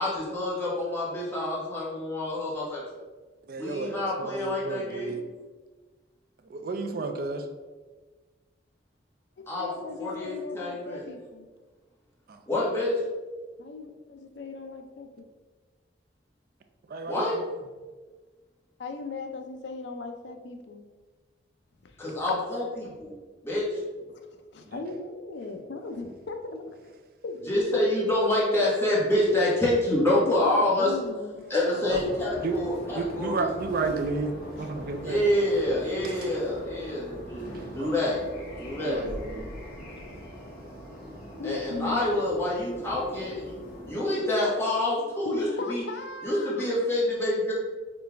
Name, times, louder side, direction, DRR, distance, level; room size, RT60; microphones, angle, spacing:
voice 1, 0.0-2.8 3.6-5.2 9.5-9.7 10.0-11.0 12.5-12.9 17.1-17.4 22.0-23.1 23.4-23.8 27.5-30.9 31.5-33.5 35.0-38.2 38.6-39.0 41.4-43.6 43.8-45.8 46.2-47.5, left 1 dB, 15° left, -7 dB, 1.3 m, -27 dB
voice 2, 3.5-5.2 6.5-7.4 12.3-12.4 16.9-17.4 31.7-32.0 32.4-32.6 32.9-34.3 34.6-35.2 37.8-37.9 38.8-39.5, right 3 dB, 50° right, 6 dB, 0.4 m, -31 dB
voice 3, 9.4-11.5 13.6-15.3 18.8-20.9 21.8-22.0 24.1-27.6 30.2-31.5 34.5-34.7 39.1-39.2 39.8-40.2 41.4-42.0 45.3-46.7, left 3 dB, 65° left, 5 dB, 0.5 m, -38 dB
sound 1, 31.9-43.9, equal, 50° left, 1.3 m, -41 dB
3.9 x 3.3 x 3.4 m, 1.3 s
head